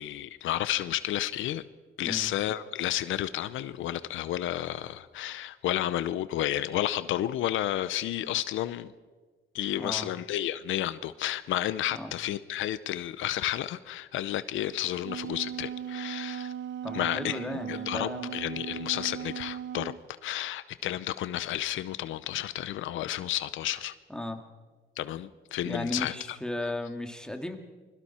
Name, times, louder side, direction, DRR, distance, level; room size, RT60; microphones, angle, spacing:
voice 1, 0.0-1.6 2.0-8.9 9.5-16.5 16.9-17.4 17.7-19.9 20.2-23.9 25.0-26.1, left 13 dB, 80° left, 15 dB, 0.7 m, -31 dB
voice 2, 9.7-10.1 11.9-12.1 16.8-18.4 24.1-24.4 25.7-27.6, left 1 dB, 5° left, 4 dB, 2.4 m, -35 dB
Wind instrument woodwind instrument, 14.8-20.0, right 9 dB, 70° right, 0.6 m, -37 dB
28.5 x 22.0 x 4.4 m, 1.3 s
cardioid pair, 90°, 20 cm